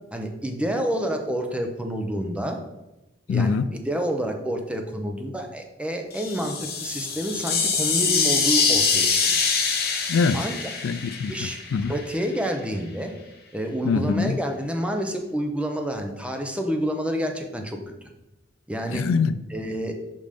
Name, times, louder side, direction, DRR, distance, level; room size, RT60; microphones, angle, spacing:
voice 1, 0.1-2.6 3.3-3.6 3.9-9.4 10.3-10.5 11.3-11.6 11.9-13.1 13.5-17.9 18.7-19.0 19.5-19.9, equal, 5° right, 0.7 m, -28 dB
voice 2, 3.3-3.7 10.1-10.5 10.8-11.9 13.8-14.4 18.9-19.4, left 5 dB, 85° left, 0.4 m, -24 dB
sound 1, 6.1-12.0, left 5 dB, 55° left, 1.0 m, -24 dB
5.4 x 5.1 x 5.2 m
head